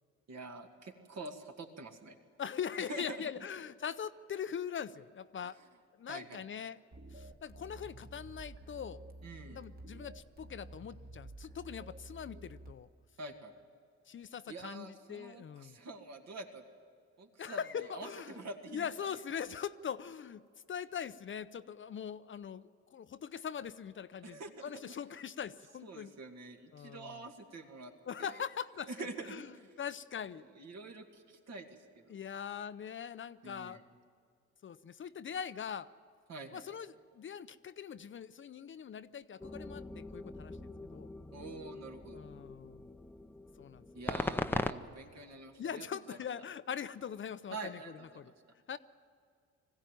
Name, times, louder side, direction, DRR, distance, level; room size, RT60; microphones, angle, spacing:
voice 1, 0.3-2.2 2.8-3.2 6.1-6.4 9.2-9.6 13.2-13.5 14.2-16.6 17.2-19.1 24.2-24.9 25.8-27.9 28.2-28.4 28.9-29.7 30.5-32.2 33.4-33.8 36.3-36.7 41.3-42.2 43.9-46.2 47.5-48.3, right 3 dB, 60° right, 3 dB, 2.3 m, -47 dB
voice 2, 2.4-5.6 6.0-6.8 7.1-9.0 9.5-12.9 14.1-15.8 17.4-18.4 18.7-20.4 20.7-26.1 26.7-27.2 28.1-29.5 29.8-30.4 32.1-33.8 34.6-35.9 36.5-41.1 42.1-42.9 43.6-43.8 45.6-47.8 48.2-48.3 48.7-48.8, left 7 dB, 40° left, 13 dB, 0.6 m, -42 dB
sound 1, 6.9-12.7, right 2 dB, 30° right, 1.7 m, -51 dB
sound 2, 39.4-44.7, left 2 dB, 5° left, 0.7 m, -40 dB
21.0 x 15.5 x 9.2 m, 2.3 s
cardioid pair, 90°, 30 cm